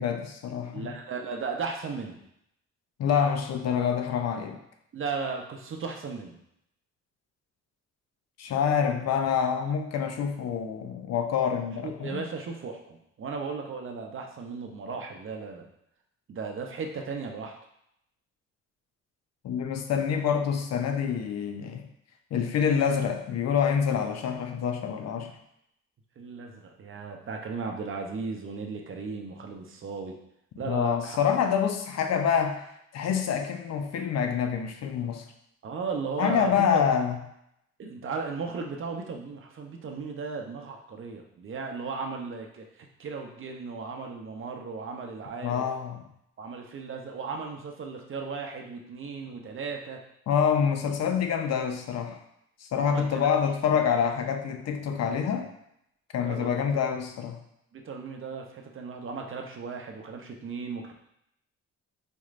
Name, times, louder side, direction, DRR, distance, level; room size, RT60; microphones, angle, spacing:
voice 1, 0.0-0.9 3.0-4.6 8.4-12.2 19.4-21.8 22.3-25.3 30.7-32.6 32.9-35.2 36.2-37.2 45.4-46.0 50.3-52.2 52.7-55.5 56.1-57.4, left 7 dB, 60° left, 5 dB, 0.5 m, -26 dB
voice 2, 0.7-2.2 4.9-6.4 11.8-15.7 16.3-17.6 25.0-25.3 26.2-30.2 30.6-31.2 35.6-36.8 37.8-45.7 46.4-50.0 52.7-53.3 53.7-53.8 56.2-56.6 57.7-60.9, right 4 dB, 45° right, 3 dB, 0.6 m, -36 dB
4.3 x 3.1 x 2.5 m, 0.77 s
cardioid pair, 90°, 30 cm